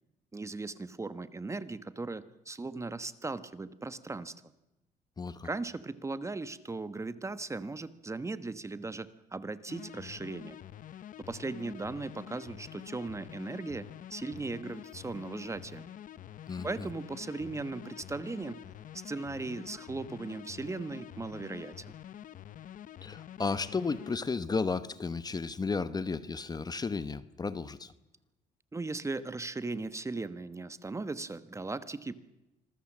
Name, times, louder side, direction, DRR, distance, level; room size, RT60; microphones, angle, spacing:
voice 1, 0.3-4.3 5.4-10.6 11.2-15.8 16.6-18.6 19.0-21.8 28.7-32.1, right 3 dB, 15° right, 1.2 m, -38 dB
voice 2, 5.2-5.5 16.5-16.9 23.0-27.9, left 4 dB, 25° left, 1.1 m, -33 dB
sound 1, 9.7-24.2, left 11 dB, 50° left, 0.9 m, -47 dB
26.0 x 21.5 x 7.4 m
cardioid pair, 110°, 17 cm